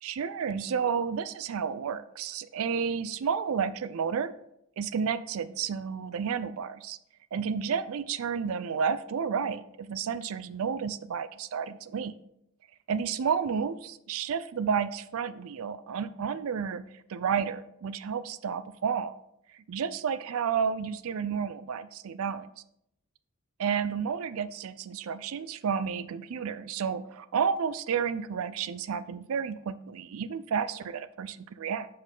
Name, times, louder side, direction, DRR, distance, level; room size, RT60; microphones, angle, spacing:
voice 1, 0.0-4.3 4.8-7.0 7.3-12.1 12.9-16.8 17.1-19.2 19.5-22.5 23.6-31.9, right 6 dB, 70° right, 14 dB, 0.4 m, -31 dB
5.6 x 5.1 x 3.8 m, 0.77 s
head